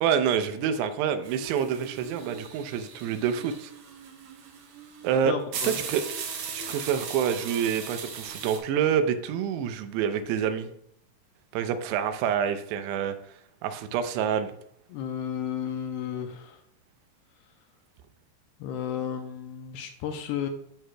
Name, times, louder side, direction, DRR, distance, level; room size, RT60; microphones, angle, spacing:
voice 1, 0.0-3.7 5.0-5.4 5.6-6.0 6.5-10.7 11.5-13.2 13.6-14.5, right 8 dB, 85° right, 9 dB, 2.7 m, -27 dB
sound 1, 1.2-8.6, right 6 dB, 70° right, 2.0 m, -38 dB
voice 2, 5.2-5.8 14.9-16.6 18.6-20.5, left 8 dB, 80° left, 5 dB, 2.4 m, -33 dB
13.5 x 4.6 x 2.2 m, 0.70 s
omnidirectional pair, 4.8 m